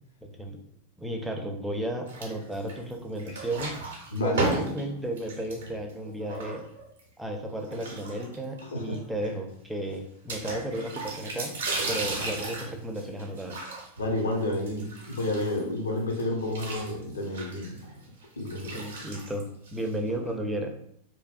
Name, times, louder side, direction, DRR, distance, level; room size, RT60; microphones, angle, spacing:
voice 1, 0.2-0.6 1.0-3.7 4.2-6.6 7.2-11.5 11.9-13.6 18.7-19.4 19.7-20.7, right 1 dB, 5° right, 2 dB, 0.4 m, -33 dB
sound 1, 2.1-2.9 3.2-7.0 7.6-8.6 8.9-9.0 9.2-9.3 10.3-15.8 16.1-20.1, right 2 dB, 65° right, 0.6 m, -35 dB
voice 2, 4.1-4.4 8.6-9.0 14.0-17.8 18.4-18.8 20.1-20.2, left 1 dB, 75° left, 1 dB, 0.5 m, -30 dB
2.5 x 2.1 x 2.3 m, 0.71 s
figure-of-eight pair, 90°, 0 cm